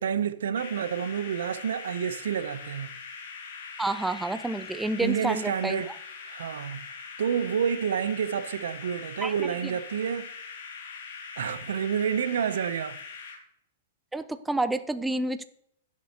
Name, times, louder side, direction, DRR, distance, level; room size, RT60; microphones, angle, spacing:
voice 1, 0.0-2.9 5.0-5.9 6.2-6.8 7.2-10.5 11.4-13.0, right 8 dB, 80° right, 0.6 m, -29 dB
sound 1, 0.5-13.4, left 5 dB, 65° left, 2.2 m, -42 dB
voice 2, 3.8-5.8 9.2-9.3 14.1-15.5, right 2 dB, 5° right, 0.4 m, -29 dB
12.0 x 7.5 x 2.9 m
hypercardioid pair, 145°, 0 cm